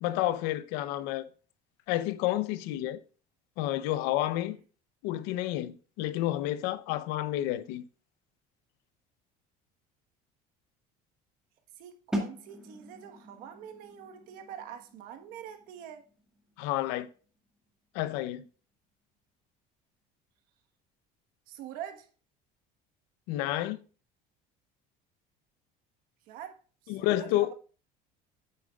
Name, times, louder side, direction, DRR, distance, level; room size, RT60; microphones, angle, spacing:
voice 1, 0.0-1.3 1.9-3.0 3.6-4.6 5.0-7.8 16.6-17.1 17.9-18.5 23.3-23.8 26.9-27.5, left 14 dB, 75° left, 0.7 m, -30 dB
voice 2, 11.8-16.1 21.5-22.1 26.3-26.6 26.8-27.5, right 10 dB, 60° right, 1.5 m, -45 dB
sound 1, 12.1-17.8, equal, 5° right, 1.7 m, -41 dB
8.9 x 8.5 x 2.4 m
cardioid pair, 175°, 17 cm